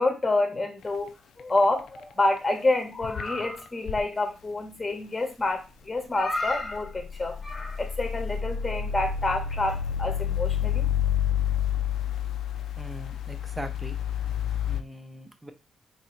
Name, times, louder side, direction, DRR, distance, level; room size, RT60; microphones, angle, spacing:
voice 1, 0.0-10.8, left 2 dB, 20° left, 5 dB, 0.8 m, -28 dB
sound 1, 0.8-1.1 1.4-2.0 2.4-2.5 3.0-4.0 6.1-14.8, left 9 dB, 75° left, 0.3 m, -29 dB
voice 2, 12.8-14.0 14.7-15.5, right 1 dB, 10° right, 8 dB, 0.5 m, -40 dB
2.8 x 2.7 x 4.3 m, 0.30 s
cardioid pair, 120°, 0 cm